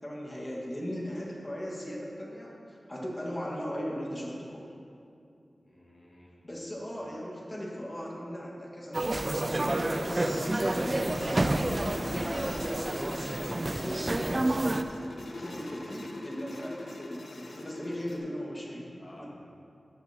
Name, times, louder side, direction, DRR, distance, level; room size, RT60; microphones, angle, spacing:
voice 1, 0.0-4.7 6.4-11.1 12.2-12.6 13.4-14.9 15.3-19.3, equal, 25° left, -4 dB, 1.7 m, -38 dB
voice 2, 5.6-6.4 15.4-15.6 19.0-19.3, left 1 dB, 55° left, -6 dB, 1.9 m, -54 dB
sound 1, 8.8-18.2, left 2 dB, 85° left, 0.9 m, -41 dB
sound 2, 8.9-14.8, right 2 dB, 35° right, 0.4 m, -29 dB
15.0 x 5.7 x 2.9 m, 2.5 s
wide cardioid pair, 85°, 0 cm